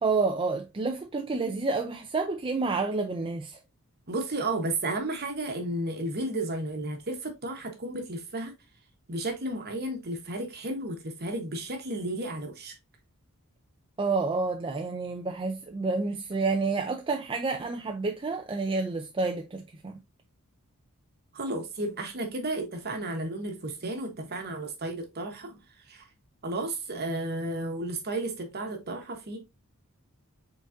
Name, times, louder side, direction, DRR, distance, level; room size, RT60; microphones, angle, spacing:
voice 1, 0.0-3.6 14.0-20.0, right 3 dB, 25° right, 0.4 m, -29 dB
voice 2, 4.1-8.5 9.1-12.8 21.3-25.6 25.9-26.1 26.4-29.4, right 2 dB, 45° right, 1.1 m, -33 dB
5.0 x 3.9 x 2.5 m
head